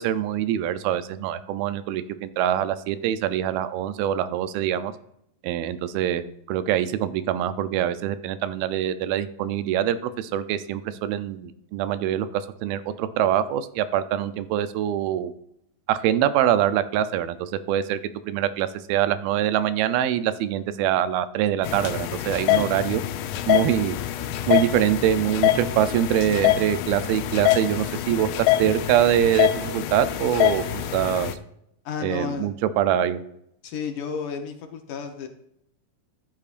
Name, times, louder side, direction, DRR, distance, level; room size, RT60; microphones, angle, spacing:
voice 1, 0.0-4.9 5.4-15.3 15.9-23.0 23.5-24.0 24.5-31.4 32.0-33.2, right 11 dB, 90° right, 13 dB, 2.4 m, -24 dB
sound 1, 21.6-31.3, left 13 dB, 90° left, 2.5 m, -25 dB
voice 2, 31.9-32.5 33.6-35.3, left 6 dB, 70° left, 4 dB, 2.2 m, -32 dB
14.0 x 8.7 x 2.5 m, 0.75 s
omnidirectional pair, 4.2 m